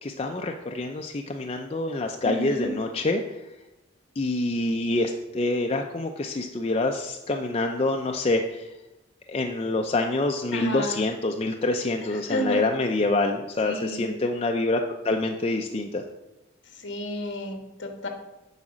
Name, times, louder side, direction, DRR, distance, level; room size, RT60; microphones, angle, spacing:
voice 1, 0.0-3.2 4.2-8.7 9.3-16.0, left 2 dB, 30° left, 3 dB, 0.4 m, -26 dB
voice 2, 2.2-2.7 10.5-11.0 12.1-12.6 13.6-14.2 16.7-18.1, left 1 dB, 60° left, 3 dB, 1.4 m, -31 dB
8.1 x 4.9 x 6.2 m, 1.0 s
head